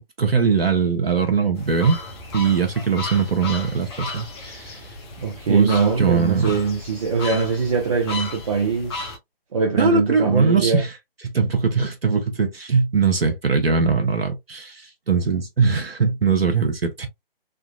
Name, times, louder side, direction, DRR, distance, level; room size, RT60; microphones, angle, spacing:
voice 1, 0.2-2.0 2.3-4.9 5.5-6.6 9.8-10.9 11.2-17.1, right 5 dB, 80° right, 1.0 m, -21 dB
sound 1, 1.5-9.2, left 3 dB, 25° left, 1.1 m, -35 dB
voice 2, 5.2-9.0 9.5-10.8, right 5 dB, 35° right, 0.8 m, -22 dB
3.7 x 2.4 x 2.3 m
figure-of-eight pair, 145°, 30 cm